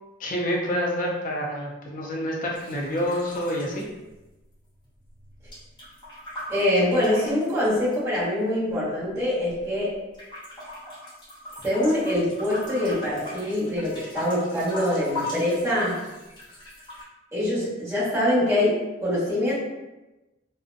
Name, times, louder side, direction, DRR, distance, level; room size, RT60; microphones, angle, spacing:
voice 1, 0.2-3.9, equal, 45° left, -2 dB, 0.5 m, -28 dB
sound 1, 2.5-4.6 4.8-8.2 8.8-9.8 10.1-17.0, left 1 dB, 25° left, 0.9 m, -39 dB
voice 2, 6.5-10.0 11.6-16.0 17.3-19.5, left 1 dB, 15° right, -11 dB, 0.9 m, -24 dB
2.5 x 2.0 x 2.4 m, 1.0 s
head